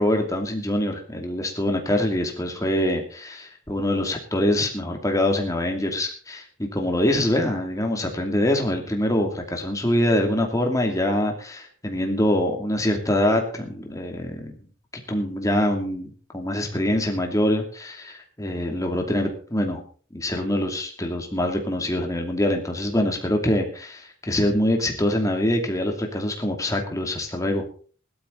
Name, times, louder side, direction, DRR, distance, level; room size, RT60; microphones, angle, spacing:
voice 1, 0.0-14.5 15.1-16.1 16.3-19.8 20.1-27.6, left 1 dB, 15° left, 3 dB, 2.7 m, -24 dB
17.5 x 12.0 x 4.0 m, 0.43 s
head